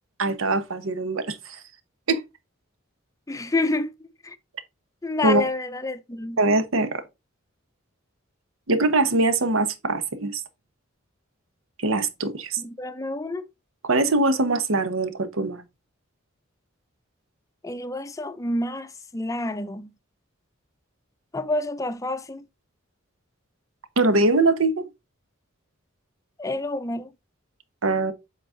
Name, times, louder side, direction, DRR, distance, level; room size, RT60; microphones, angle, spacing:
voice 1, 0.2-1.6 2.1-2.2 5.2-5.4 6.4-7.0 8.7-10.4 11.8-12.6 13.8-15.6 24.0-24.8 27.8-28.1, right 2 dB, 80° right, 1.0 m, -22 dB
voice 2, 3.3-3.9 4.2-4.4 5.0-6.4 12.6-13.5 17.6-19.9 21.3-22.4 26.4-27.1, left 2 dB, 15° left, 0.5 m, -28 dB
7.5 x 4.0 x 3.7 m
head